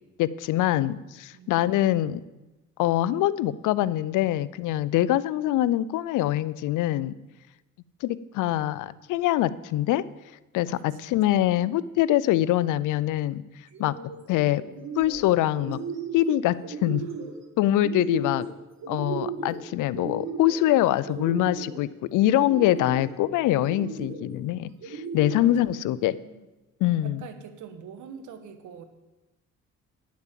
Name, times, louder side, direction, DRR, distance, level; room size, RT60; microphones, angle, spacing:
voice 1, 0.2-2.2 2.8-7.1 8.0-10.0 10.5-13.4 13.8-14.0 14.3-14.6 15.0-15.8 16.1-17.1 17.6-18.5 18.9-26.2 26.8-27.2, left 13 dB, 85° left, 18 dB, 0.5 m, -24 dB
voice 2, 1.3-1.6 10.7-11.9 17.0-17.1 25.3-26.4 27.0-28.8, right 7 dB, 80° right, 9 dB, 1.2 m, -45 dB
sound 1, 13.7-14.2 14.6-15.2 15.5-16.3 16.6-17.3 17.7-18.5 18.8-19.6 19.9-20.7 21.0-21.8 22.3-23.0 23.6-24.2 24.8-25.6, right 4 dB, 60° right, 1.9 m, -35 dB
10.5 x 7.3 x 7.4 m, 1.1 s
cardioid pair, 90°, 30 cm